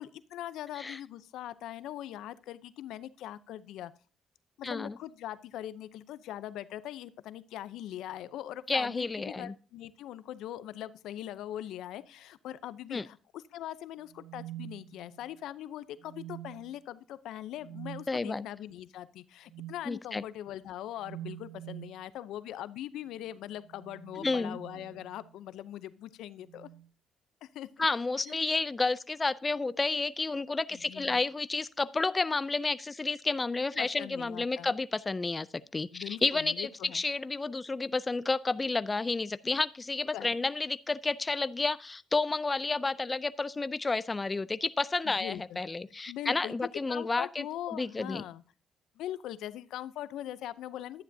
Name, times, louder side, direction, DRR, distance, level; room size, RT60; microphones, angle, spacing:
voice 1, 0.0-3.9 4.6-26.7 27.4-27.9 28.3-28.4 30.7-31.2 33.8-34.7 35.9-37.0 40.1-40.4 45.0-45.6 46.1-46.5 46.9-48.4 49.0-51.0, left 12 dB, 85° left, 0.6 m, -41 dB
voice 2, 4.6-5.0 8.7-9.5 12.9-13.0 18.1-18.4 19.9-20.2 24.2-24.6 27.8-35.5 35.7-47.4 47.7-48.2, left 3 dB, 25° left, 0.4 m, -31 dB
sound 1, 14.1-15.4 16.0-16.8 17.6-18.1 19.5-19.9 21.0-22.0 23.5-25.4 26.4-26.9 28.1-28.4, right 15 dB, 75° right, 0.4 m, -46 dB
11.5 x 9.9 x 2.7 m
cardioid pair, 90°, 0 cm